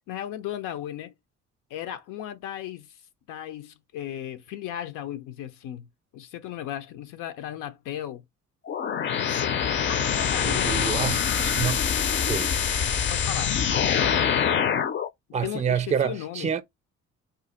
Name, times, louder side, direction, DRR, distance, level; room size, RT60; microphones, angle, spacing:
voice 1, 0.1-1.1 1.7-2.9 3.3-5.9 6.1-8.2 9.2-9.6 9.9-11.0 13.1-13.6 15.4-16.5, left 11 dB, 90° left, 0.6 m, -36 dB
sound 1, 8.7-15.1, left 7 dB, 40° left, 0.4 m, -24 dB
voice 2, 10.4-11.8 12.3-12.5 15.3-16.6, right 7 dB, 25° right, 0.4 m, -28 dB
2.6 x 2.4 x 4.1 m
cardioid pair, 90°, 30 cm